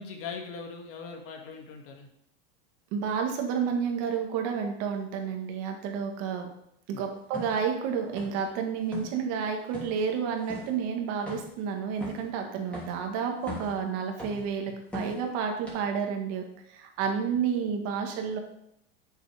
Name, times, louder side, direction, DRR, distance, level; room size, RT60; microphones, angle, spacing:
voice 1, 0.0-2.1 6.9-7.0, left 5 dB, 45° left, 3 dB, 1.9 m, -40 dB
voice 2, 2.9-6.5 6.9-16.4 16.7-18.4, right 6 dB, 55° right, 3 dB, 1.9 m, -30 dB
sound 1, 7.3-7.6 8.2-8.5 8.8-9.2 9.7-10.0 10.5-10.7 11.3-11.6 12.0-12.3 12.7-13.0 13.4-13.8 14.2-14.5 14.9-15.2 15.7-15.8, left 1 dB, 5° left, 3.0 m, -39 dB
7.7 x 7.1 x 5.0 m, 0.77 s
supercardioid pair, 125°, 31 cm